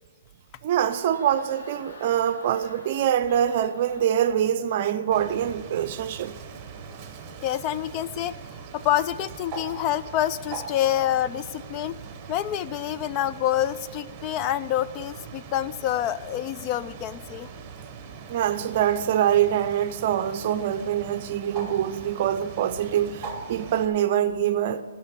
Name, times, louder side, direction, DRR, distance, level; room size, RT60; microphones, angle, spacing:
sound 1, 0.6-6.2, left 1 dB, 75° left, 4.1 m, -49 dB
voice 1, 0.6-6.3 18.3-24.8, right 10 dB, 45° right, 0.6 m, -24 dB
Bird, 5.1-23.9, right 5 dB, 25° right, 1.1 m, -41 dB
voice 2, 7.4-8.4 8.7-12.0 12.3-17.5, left 11 dB, 30° left, 0.3 m, -27 dB
12.0 x 6.2 x 8.1 m
hypercardioid pair, 150°, 0 cm